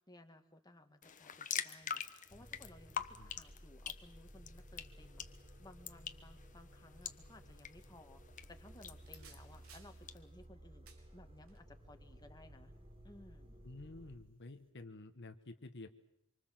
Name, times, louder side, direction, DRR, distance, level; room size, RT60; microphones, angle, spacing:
voice 1, 0.0-8.2 8.5-12.7 13.0-13.6, left 1 dB, 20° left, 6 dB, 2.0 m, -59 dB
sound 1, 1.0-10.2, left 8 dB, 40° left, 1.2 m, -46 dB
sound 2, 2.3-14.2, equal, 25° right, 4.2 m, -57 dB
sound 3, 8.3-14.7, right 6 dB, 85° right, 4.0 m, -67 dB
voice 2, 13.6-15.9, left 2 dB, 55° left, 7 dB, 1.3 m, -51 dB
26.0 x 24.5 x 7.6 m, 0.76 s
head